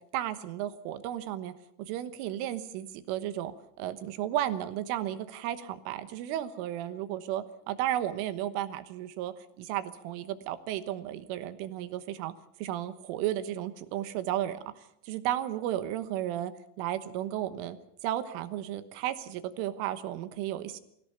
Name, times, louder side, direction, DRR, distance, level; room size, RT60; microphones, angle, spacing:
voice 1, 0.1-1.5 1.9-12.3 12.6-14.6 15.1-16.5 16.8-17.8 18.0-20.8, right 12 dB, 85° right, 11 dB, 3.7 m, -33 dB
23.0 x 17.5 x 7.0 m, 0.75 s
omnidirectional pair, 5.7 m